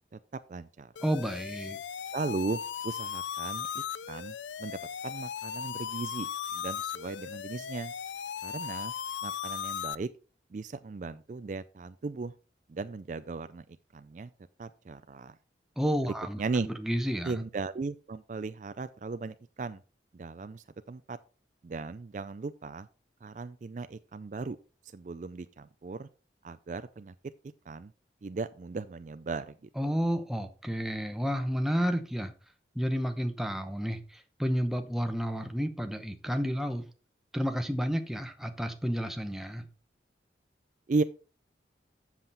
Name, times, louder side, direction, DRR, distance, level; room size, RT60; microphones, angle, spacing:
voice 1, 0.1-0.9 2.1-7.9 8.4-8.9 9.2-10.1 10.5-12.3 12.7-13.6 13.9-14.3 14.6-15.3 16.0-16.7 17.2-19.8 20.1-21.2 21.6-22.9 23.2-24.6 24.8-26.1 26.4-27.1 27.7-27.9 28.2-29.9 40.9-41.0, right 3 dB, 45° right, 12 dB, 0.4 m, -37 dB
sound 1, 1.0-10.0, left 8 dB, 85° left, 0.4 m, -37 dB
voice 2, 1.0-1.8 15.8-17.4 29.8-32.3 32.7-36.9 37.3-39.6, equal, ahead, 6 dB, 0.8 m, -31 dB
7.7 x 7.3 x 4.0 m, 0.35 s
head